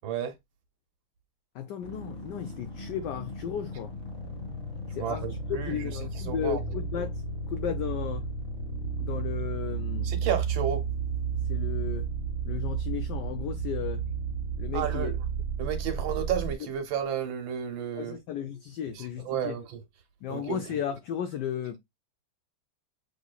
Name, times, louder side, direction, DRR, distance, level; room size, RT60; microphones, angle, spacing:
voice 1, 0.0-0.3 5.0-5.9 6.3-6.6 10.0-10.8 14.7-15.2 15.6-18.2 18.9-19.8 20.3-20.6, right 8 dB, 65° right, 1.6 m, -32 dB
voice 2, 1.5-3.9 4.9-8.3 9.0-10.1 11.5-12.1 12.5-14.1 14.6-15.1 18.0-19.6 20.2-21.8, left 9 dB, 85° left, 0.9 m, -34 dB
sound 1, 1.8-16.5, right 5 dB, 35° left, 1.3 m, -33 dB
6.4 x 3.1 x 2.2 m
omnidirectional pair, 2.4 m